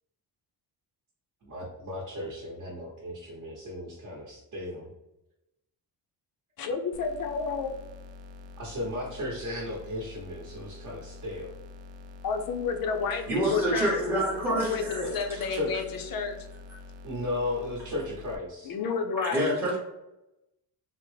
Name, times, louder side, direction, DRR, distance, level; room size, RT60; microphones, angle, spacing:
voice 1, 1.4-4.9 8.6-11.5 15.0-15.8 17.0-18.7, left 1 dB, 40° right, -4 dB, 0.8 m, -35 dB
voice 2, 6.6-7.8 12.2-14.0 14.5-16.4 18.6-19.6, left 5 dB, 55° left, 6 dB, 0.5 m, -30 dB
sound 1, 6.9-18.4, left 3 dB, 90° right, 0.5 m, -46 dB
voice 3, 13.3-15.1 19.2-19.8, right 1 dB, 5° right, -6 dB, 0.7 m, -27 dB
3.6 x 2.0 x 3.1 m, 0.90 s
cardioid pair, 160°, 42 cm